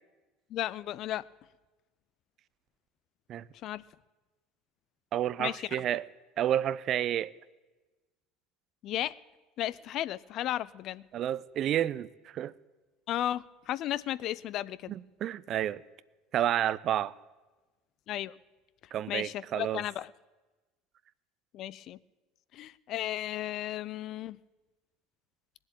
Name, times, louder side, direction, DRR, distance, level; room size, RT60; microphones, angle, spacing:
voice 1, 0.5-1.2 3.6-3.8 5.4-5.7 8.8-9.2 9.6-11.0 13.1-14.9 18.1-18.3 19.1-20.1 21.5-22.0 22.5-24.4, left 13 dB, 50° left, 0.4 m, -34 dB
voice 2, 5.1-6.1 6.4-7.3 11.1-12.1 12.3-12.5 14.9-15.8 16.3-17.1 18.9-19.8, right 11 dB, 50° right, 0.4 m, -30 dB
19.0 x 7.6 x 8.9 m
figure-of-eight pair, 65°, 0 cm